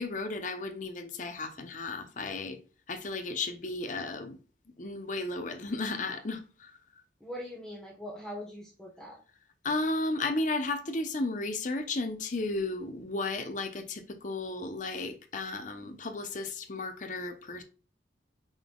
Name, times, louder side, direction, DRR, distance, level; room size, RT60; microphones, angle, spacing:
voice 1, 0.0-2.6 2.9-4.4 4.8-6.7 9.6-17.6, left 2 dB, 45° left, 0.8 m, -34 dB
voice 2, 7.2-9.2, equal, 5° left, 1.1 m, -42 dB
5.3 x 4.0 x 2.3 m
head